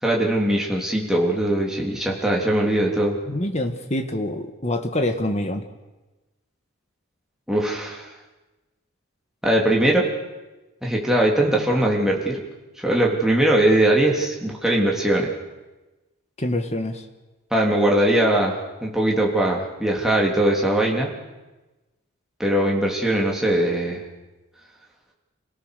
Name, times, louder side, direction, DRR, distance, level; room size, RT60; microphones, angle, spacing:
voice 1, 0.0-3.2 7.5-8.1 9.4-10.1 10.8-12.4 12.8-15.3 17.5-21.1 22.4-24.0, right 1 dB, ahead, -2 dB, 3.4 m, -20 dB
voice 2, 3.2-5.7 16.4-17.1, left 1 dB, 30° left, 6 dB, 1.7 m, -26 dB
27.5 x 18.0 x 6.8 m, 1.1 s
head